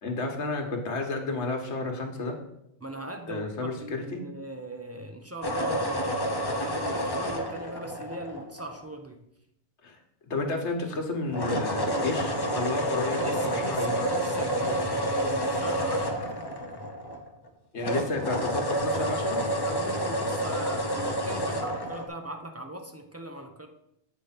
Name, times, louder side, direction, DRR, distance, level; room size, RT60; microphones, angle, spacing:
voice 1, 0.0-2.4 3.3-4.2 9.8-10.0 10.3-14.1 17.7-19.4, left 3 dB, 75° left, 3 dB, 1.5 m, -31 dB
voice 2, 2.8-6.3 6.6-9.2 13.1-16.2 19.4-23.7, right 1 dB, 20° right, 4 dB, 0.5 m, -40 dB
sound 1, 5.4-8.9 11.3-17.5 17.8-22.1, equal, 25° left, 0.6 m, -29 dB
8.0 x 3.4 x 5.8 m, 0.79 s
omnidirectional pair, 1.2 m